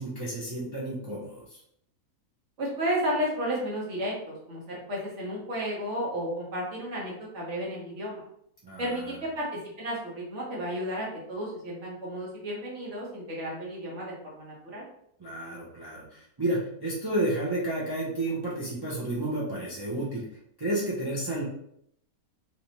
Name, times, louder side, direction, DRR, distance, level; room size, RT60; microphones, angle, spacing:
voice 1, 0.0-1.6 8.6-9.2 15.2-20.2 20.6-21.4, right 1 dB, 30° right, -6 dB, 0.4 m, -31 dB
voice 2, 2.6-8.2 8.8-14.8, equal, 55° right, -4 dB, 1.3 m, -33 dB
3.3 x 2.7 x 2.9 m, 0.71 s
omnidirectional pair, 1.5 m